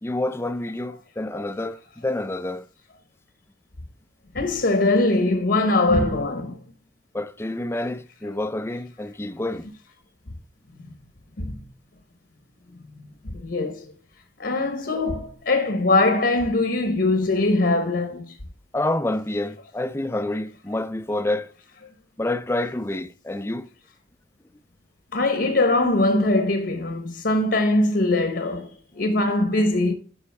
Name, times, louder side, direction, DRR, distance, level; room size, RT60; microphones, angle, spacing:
voice 1, 0.0-2.7 7.1-9.7 18.7-21.5 22.2-23.7, left 1 dB, 15° left, 0.4 m, -28 dB
voice 2, 4.3-6.6 10.8-10.9 11.4-11.6 12.9-13.9 14.4-18.4 25.1-29.9, left 2 dB, 60° left, 1.1 m, -22 dB
11.5 x 5.6 x 3.5 m
head